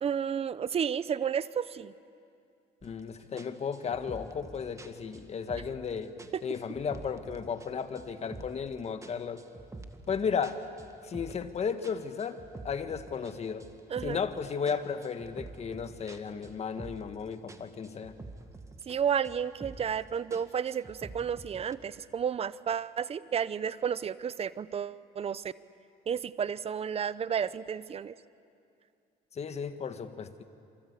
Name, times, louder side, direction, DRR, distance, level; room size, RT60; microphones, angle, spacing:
voice 1, 0.0-1.9 13.9-14.2 18.9-25.5 26.1-28.1, right 7 dB, 35° right, 16 dB, 0.8 m, -32 dB
voice 2, 2.8-6.1 6.4-9.4 10.1-10.6 11.0-13.7 14.0-18.1 29.3-30.4, left 6 dB, 40° left, 8 dB, 1.6 m, -34 dB
sound 1, 2.8-3.0 3.4-5.9 6.2-7.7 7.9-8.7 9.0-11.5 11.8-14.3 14.7-17.2 17.5-19.0 19.2-20.0 20.3-21.7, right 2 dB, 20° right, 1.9 m, -47 dB
27.5 x 24.5 x 8.4 m, 2.5 s
cardioid pair, 110°, 17 cm